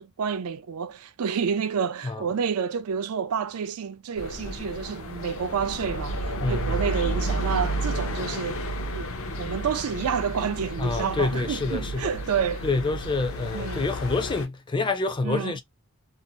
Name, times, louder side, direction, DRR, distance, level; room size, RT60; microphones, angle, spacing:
voice 1, 0.0-8.6 8.9-12.7 13.5-13.9 15.2-15.6, right 6 dB, 80° right, 0.4 m, -29 dB
sound 1, 4.2-14.5, right 1 dB, 70° left, 0.6 m, -31 dB
voice 2, 6.4-6.8 10.8-12.1 12.6-15.6, left 3 dB, 20° left, 0.4 m, -27 dB
2.6 x 2.0 x 2.7 m
head